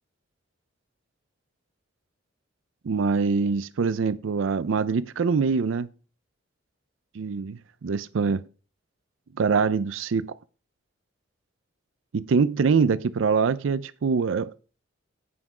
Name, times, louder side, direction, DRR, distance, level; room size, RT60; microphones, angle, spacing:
voice 1, 2.8-5.9 7.1-8.4 9.4-10.3 12.1-14.5, right 5 dB, 80° right, 0.4 m, -24 dB
9.5 x 5.8 x 4.9 m
head